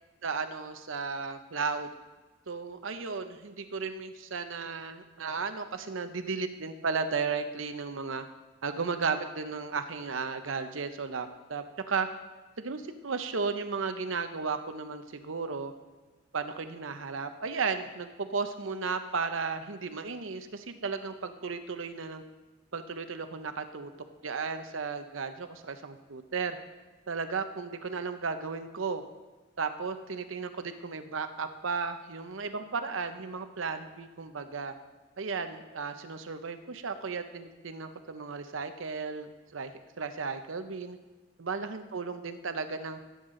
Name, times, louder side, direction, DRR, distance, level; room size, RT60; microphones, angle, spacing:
voice 1, 0.2-1.9 2.5-8.3 8.6-12.1 12.6-15.7 16.3-22.2 22.7-23.9 24.2-26.6 27.1-29.0 29.6-34.7 35.2-39.7 40.0-41.0 41.4-43.0, right 5 dB, 85° right, 9 dB, 0.8 m, -34 dB
14.5 x 8.1 x 3.8 m, 1.2 s
head